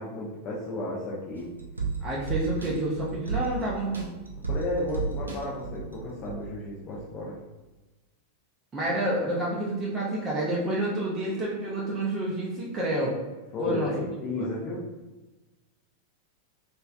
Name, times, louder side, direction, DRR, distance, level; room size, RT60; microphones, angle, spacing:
voice 1, 0.0-1.5 4.5-7.4 13.5-14.8, left 2 dB, 35° left, -5 dB, 0.6 m, -33 dB
sound 1, 1.4-6.5 6.9-7.0, right 5 dB, 80° right, 0.5 m, -34 dB
voice 2, 2.0-4.1 8.7-13.2 13.6-13.9 14.3-14.5, right 1 dB, 20° right, -5 dB, 0.6 m, -29 dB
3.0 x 2.6 x 2.3 m, 1.1 s
figure-of-eight pair, 90°, 0 cm